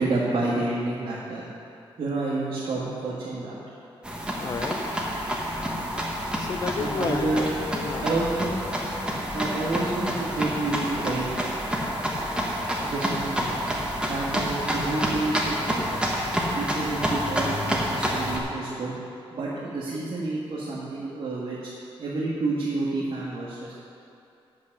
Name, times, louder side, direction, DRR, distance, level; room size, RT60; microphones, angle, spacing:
voice 1, 0.0-1.5 2.0-3.6 6.8-7.5 8.0-8.5 9.3-11.3 12.8-13.5 14.0-15.9 16.5-18.9 19.3-21.7 22.0-23.7, right 2 dB, 65° right, -6 dB, 1.6 m, -29 dB
sound 1, 4.0-18.4, equal, 10° right, 1.2 m, -28 dB
voice 2, 4.4-4.8 6.4-8.1, left 5 dB, 40° left, 11 dB, 0.4 m, -32 dB
8.4 x 8.0 x 6.5 m, 2.7 s
wide cardioid pair, 145°, 10 cm